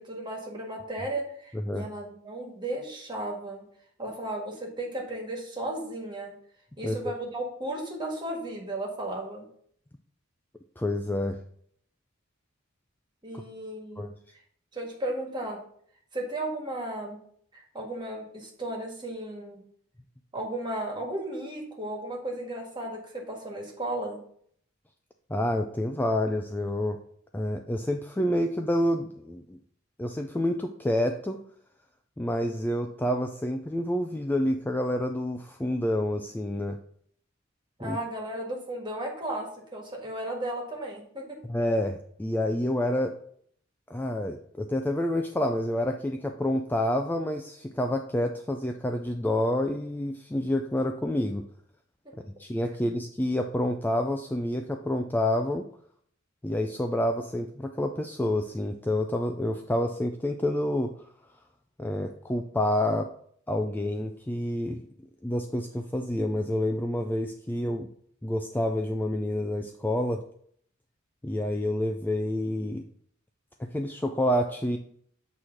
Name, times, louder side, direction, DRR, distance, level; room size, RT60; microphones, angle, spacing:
voice 1, 0.0-3.7 4.0-6.3 6.8-9.5 13.2-14.1 14.7-15.6 16.1-17.2 17.5-19.6 20.3-24.2 37.8-41.4, right 1 dB, 25° right, 0 dB, 1.7 m, -35 dB
voice 2, 1.5-1.9 6.8-7.0 10.8-11.4 14.0-14.1 25.3-27.0 27.3-29.6 30.0-31.4 32.2-36.8 37.8-38.0 41.5-43.1 43.9-51.4 52.4-55.7 56.4-60.9 61.8-63.1 63.5-64.8 65.2-67.9 68.2-70.2 71.2-72.8 73.6-74.8, left 1 dB, 10° left, 4 dB, 0.3 m, -28 dB
8.4 x 3.2 x 5.8 m, 0.63 s
head